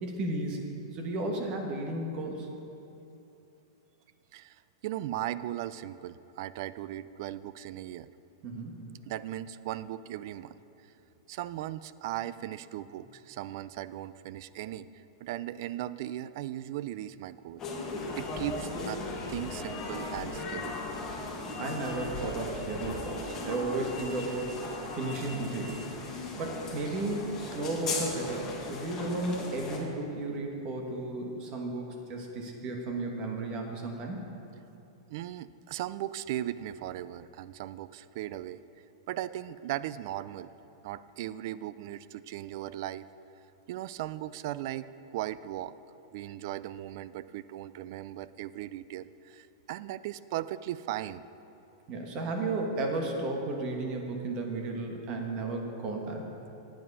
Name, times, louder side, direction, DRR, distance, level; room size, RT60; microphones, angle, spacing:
voice 1, 0.0-0.6 0.9-2.5 8.4-8.8 21.6-25.8 26.3-34.2 51.9-56.2, right 2 dB, 40° right, 2 dB, 1.4 m, -34 dB
voice 2, 4.3-8.1 9.0-10.6 11.3-14.9 15.2-17.6 18.2-19.0 19.3-20.8 35.1-38.6 39.1-40.5 40.8-43.0 43.7-45.7 46.1-51.2, right 13 dB, 55° right, 16 dB, 0.3 m, -37 dB
sound 1, 17.6-29.8, left 3 dB, 25° left, 1.6 m, -37 dB
9.1 x 8.6 x 5.4 m, 2.9 s
hypercardioid pair, 140°, 2 cm